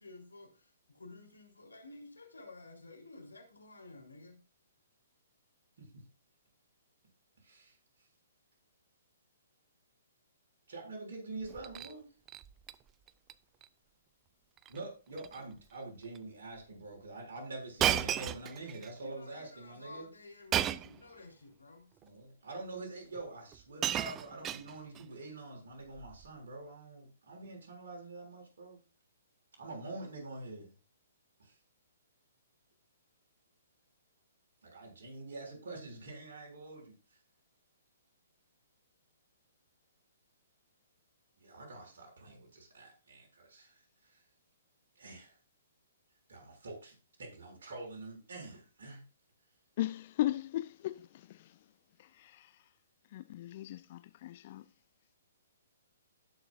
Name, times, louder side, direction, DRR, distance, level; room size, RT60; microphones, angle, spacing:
voice 1, 0.0-4.4 19.0-21.9, left 2 dB, 80° left, 3.9 m, -52 dB
voice 2, 7.4-7.8 10.7-12.1 14.7-20.0 22.0-28.8 29.6-30.7 31.4-31.6 34.6-37.2 41.4-44.2 44.9-45.4 46.3-49.0, right 2 dB, 60° right, 6.5 m, -46 dB
Shatter, 11.4-11.9 12.3-12.7 13.1-13.3 13.6-13.7 14.6-14.8 15.1-15.4 16.1-16.2 17.8-18.9 20.5-21.0 22.0-22.1 23.2-23.3 23.5-25.0 26.0-26.3, right 11 dB, 20° right, 0.4 m, -34 dB
voice 3, 49.8-51.5 52.0-52.5 53.1-54.6, left 14 dB, 40° left, 0.4 m, -37 dB
18.5 x 6.7 x 2.6 m
figure-of-eight pair, 125°, 0 cm